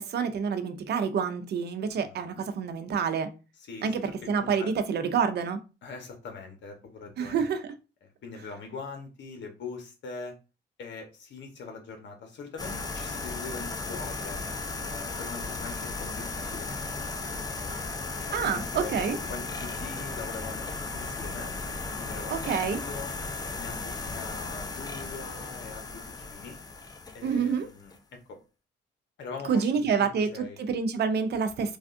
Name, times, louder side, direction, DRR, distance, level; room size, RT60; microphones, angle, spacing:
voice 1, 0.0-3.3 3.8-5.6 7.2-7.7 18.3-19.2 22.3-22.8 27.2-27.7 29.4-31.8, right 6 dB, 55° right, 0.5 m, -28 dB
voice 2, 3.6-3.9 4.2-4.7 5.8-7.4 8.0-10.4 10.8-14.4 14.8-16.9 17.3-17.7 18.2-18.9 19.3-20.6 20.9-21.5 22.0-23.1 23.6-26.6 27.1-28.4 29.2-30.6, left 4 dB, 65° left, 1.0 m, -42 dB
sound 1, 12.6-28.0, left 3 dB, 20° left, 0.4 m, -36 dB
3.4 x 2.4 x 2.5 m
cardioid pair, 90°, 20 cm